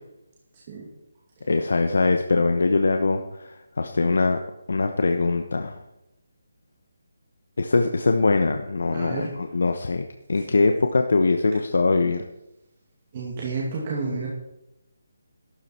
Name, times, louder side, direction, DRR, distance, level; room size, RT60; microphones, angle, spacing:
voice 1, 1.5-4.4 4.7-5.8 7.6-12.2, left 3 dB, 65° left, 6 dB, 1.1 m, -22 dB
voice 2, 8.9-9.3 13.1-14.3, right 4 dB, 25° right, -4 dB, 2.2 m, -30 dB
13.5 x 12.5 x 4.4 m, 0.90 s
hypercardioid pair, 175°, 0 cm